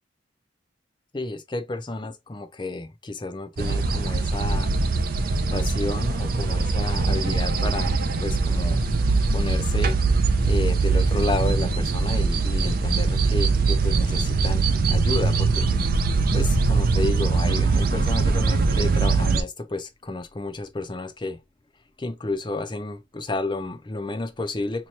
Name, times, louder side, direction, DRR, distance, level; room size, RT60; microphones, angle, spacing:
voice 1, 1.1-4.7 5.2-15.7 16.3-21.4 22.0-24.9, left 2 dB, 25° left, 0.5 m, -31 dB
sound 1, 3.6-19.4, right 4 dB, 50° right, 0.5 m, -22 dB
3.0 x 2.2 x 4.0 m
head